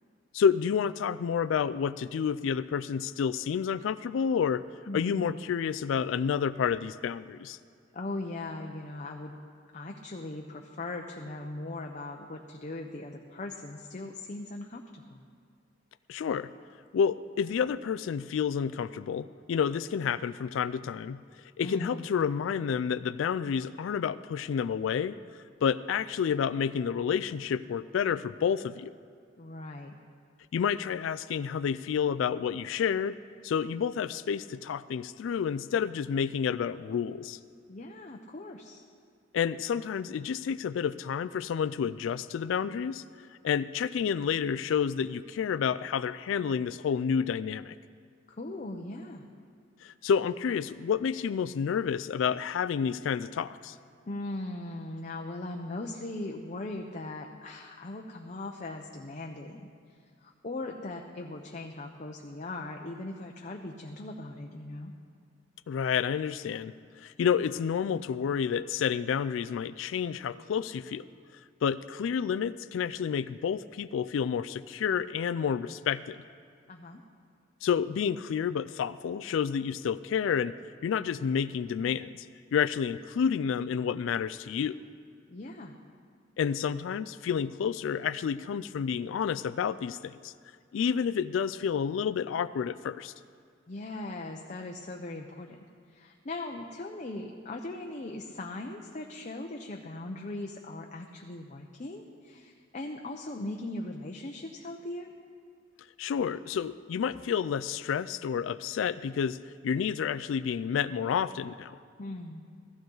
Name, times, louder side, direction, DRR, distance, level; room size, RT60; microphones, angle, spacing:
voice 1, 0.3-4.6 4.9-7.6 16.1-16.5 16.9-21.2 21.6-25.2 25.6-28.9 30.5-33.2 33.4-37.4 39.3-43.0 43.4-47.7 49.8-53.8 65.7-71.0 71.6-76.2 77.6-80.6 80.8-82.3 82.5-84.8 86.4-90.3 90.7-93.1 106.0-109.4 109.6-111.8, left 7 dB, 85° left, 13 dB, 0.3 m, -29 dB
voice 2, 4.9-5.4 7.9-9.3 9.7-15.2 21.6-22.1 29.4-29.9 37.7-38.8 48.3-49.2 54.1-59.7 60.2-64.9 76.7-77.0 85.3-85.8 93.7-105.1 112.0-112.4, left 2 dB, 40° left, 2 dB, 0.7 m, -39 dB
16.0 x 14.5 x 3.9 m, 2.1 s
head